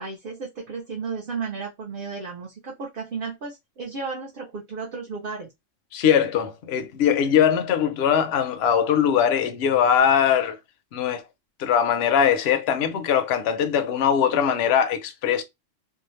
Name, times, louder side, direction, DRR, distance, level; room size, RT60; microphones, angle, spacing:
voice 1, 0.0-5.5, right 4 dB, 50° right, 0.8 m, -33 dB
voice 2, 5.9-10.6 10.9-11.2 11.6-15.4, left 8 dB, 65° left, 0.7 m, -21 dB
2.7 x 2.0 x 3.0 m
omnidirectional pair, 1.3 m